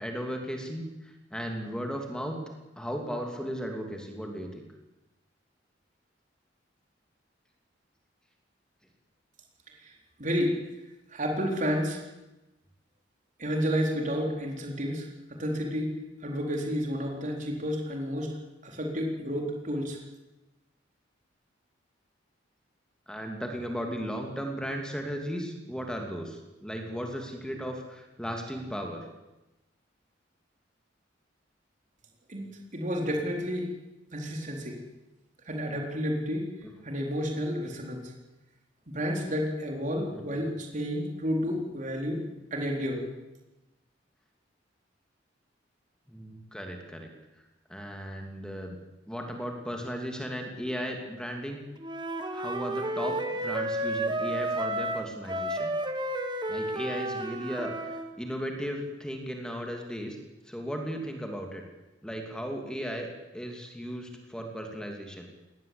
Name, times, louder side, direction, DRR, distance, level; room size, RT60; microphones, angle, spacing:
voice 1, 0.0-2.4 2.8-4.6 23.1-29.1 36.6-36.7 40.1-40.4 46.1-47.1 47.7-48.8 49.1-51.6 52.3-55.7 56.5-60.2 60.5-61.6 62.0-65.3, equal, 5° left, 2 dB, 2.9 m, -36 dB
voice 2, 10.2-10.6 11.1-12.0 13.4-18.4 18.6-20.0 32.3-33.7 34.1-34.8 35.5-36.5 36.8-38.1 38.9-42.2 42.5-43.0, equal, 40° right, 1 dB, 4.2 m, -31 dB
Wind instrument woodwind instrument, 51.8-58.1, right 1 dB, 25° right, 1.8 m, -31 dB
21.0 x 19.0 x 8.6 m, 0.99 s
head